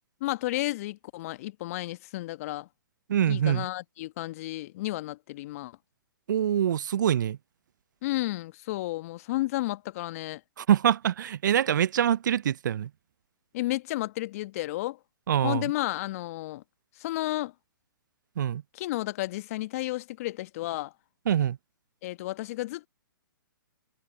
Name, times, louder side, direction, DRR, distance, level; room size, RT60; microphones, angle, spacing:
voice 1, 0.2-2.7 3.3-5.7 8.0-10.4 13.5-15.0 15.4-16.6 17.0-17.5 18.7-20.9 22.0-22.9, left 17 dB, 40° left, 1.3 m, -32 dB
voice 2, 3.1-3.7 6.3-7.4 10.6-12.9 15.3-15.7 18.4-18.6 21.3-21.6, right 10 dB, 60° right, 0.5 m, -24 dB
figure-of-eight pair, 125°, 12 cm